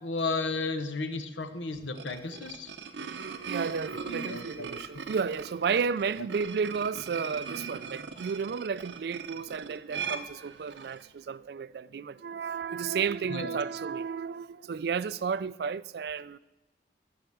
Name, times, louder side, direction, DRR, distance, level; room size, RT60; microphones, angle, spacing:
voice 1, 0.0-2.7 4.1-4.8 13.3-13.5, left 3 dB, 90° left, 0.9 m, -33 dB
sound 1, 1.7-11.1, right 6 dB, 80° right, 0.7 m, -40 dB
voice 2, 3.2-16.4, right 6 dB, 60° right, 0.3 m, -32 dB
12.5 x 5.7 x 7.7 m
head